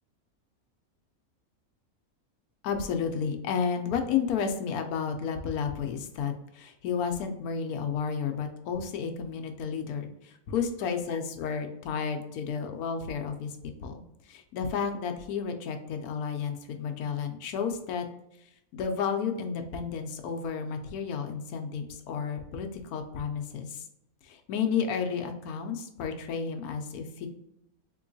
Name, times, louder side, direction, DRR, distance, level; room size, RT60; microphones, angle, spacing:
voice 1, 2.6-13.5 13.8-14.0 14.3-18.0 18.7-23.8 24.2-27.3, left 6 dB, 85° left, 6 dB, 1.1 m, -32 dB
3.7 x 2.9 x 2.6 m, 0.80 s
omnidirectional pair, 1.5 m